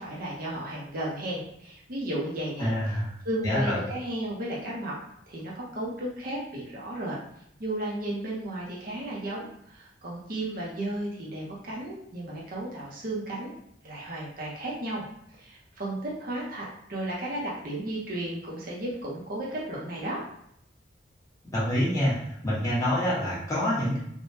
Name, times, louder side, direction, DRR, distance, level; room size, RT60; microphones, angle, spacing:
voice 1, 0.0-2.7 3.2-4.9 5.3-7.2 7.6-13.5 13.8-15.0 15.4-20.2, right 1 dB, 55° right, -4 dB, 0.8 m, -34 dB
voice 2, 2.6-3.1 3.4-3.8 21.5-22.1 22.4-24.0, equal, 20° left, -8 dB, 1.1 m, -26 dB
3.5 x 2.3 x 2.7 m, 0.72 s
head